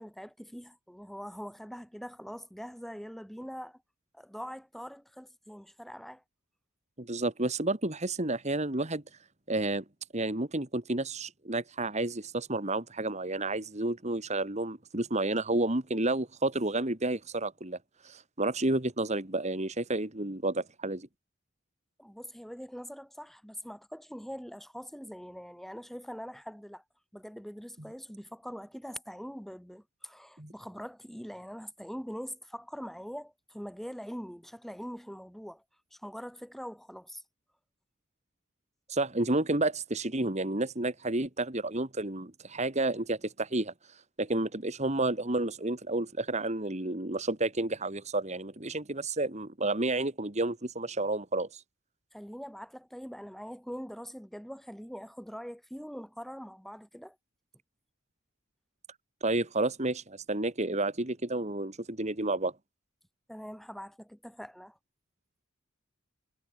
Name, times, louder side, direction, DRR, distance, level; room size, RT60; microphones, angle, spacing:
voice 1, 0.0-3.8 4.1-6.2 22.0-26.8 27.1-35.6 35.9-37.2 52.1-57.2 63.3-64.8, equal, ahead, 3.6 m, -43 dB
voice 2, 7.0-9.0 9.5-9.8 10.1-17.8 18.0-21.1 30.4-30.5 38.9-51.6 59.2-62.5, right 2 dB, 35° right, 2.3 m, -31 dB
head